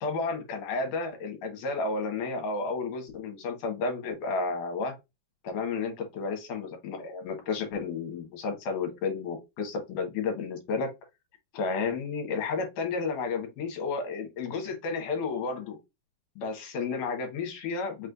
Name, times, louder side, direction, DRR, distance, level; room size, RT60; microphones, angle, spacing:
voice 1, 0.0-4.9 5.4-10.9 11.5-15.8 16.4-18.1, left 4 dB, 65° left, 2.6 m, -32 dB
5.8 x 3.2 x 2.5 m
omnidirectional pair, 4.2 m